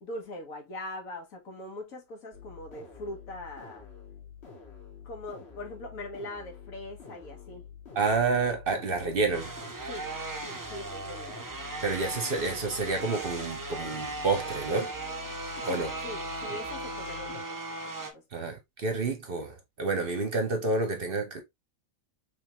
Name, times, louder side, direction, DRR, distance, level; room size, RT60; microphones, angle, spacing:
voice 1, 0.0-3.9 5.0-7.7 9.8-10.1 10.7-11.3 15.6-18.2, left 1 dB, 80° left, 1.6 m, -41 dB
sound 1, 2.3-17.4, left 7 dB, 50° left, 1.3 m, -48 dB
voice 2, 7.9-9.5 11.8-14.9 15.7-15.9 18.3-21.4, right 3 dB, 50° right, 0.9 m, -29 dB
sound 2, 9.3-18.1, right 2 dB, 30° right, 0.4 m, -37 dB
3.5 x 3.5 x 2.8 m
omnidirectional pair, 1.4 m